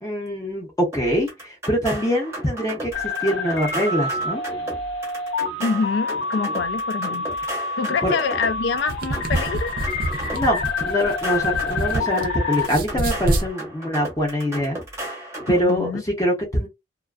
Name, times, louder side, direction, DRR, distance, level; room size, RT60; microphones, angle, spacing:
voice 1, 0.0-4.4 8.0-8.1 10.3-10.6 10.9-14.8 15.5-16.7, equal, 15° left, 0.7 m, -24 dB
sound 1, 0.9-15.8, right 1 dB, 15° right, 0.7 m, -35 dB
sound 2, 2.9-12.7, left 3 dB, 90° left, 1.1 m, -28 dB
voice 2, 5.6-7.3 7.8-9.7 15.5-16.0, left 5 dB, 65° left, 0.3 m, -26 dB
sound 3, 8.7-12.3 12.6-13.5, right 2 dB, 50° right, 0.5 m, -26 dB
2.4 x 2.2 x 2.3 m
head